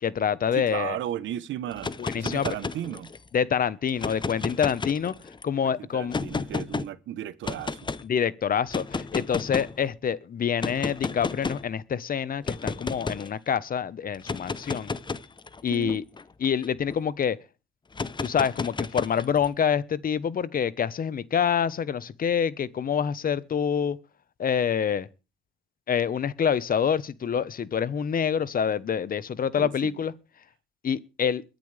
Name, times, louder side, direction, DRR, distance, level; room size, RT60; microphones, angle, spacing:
voice 1, 0.0-1.0 2.0-2.5 3.3-5.1 5.4-6.2 8.0-14.9 15.6-16.0 16.4-17.4 18.2-24.0 24.4-25.1 25.9-30.1 30.8-31.4, left 7 dB, 50° left, 1.1 m, -26 dB
voice 2, 0.5-3.1 5.6-7.9 15.7-16.0 29.6-30.0, right 12 dB, 85° right, 1.0 m, -35 dB
sound 1, 1.7-3.3 3.9-5.4 6.1-6.9 7.4-8.0 8.7-9.8 10.6-11.7 12.4-13.3 14.1-17.0 17.9-19.5, left 4 dB, 25° left, 0.9 m, -32 dB
22.5 x 10.5 x 3.4 m
cardioid pair, 100°, 19 cm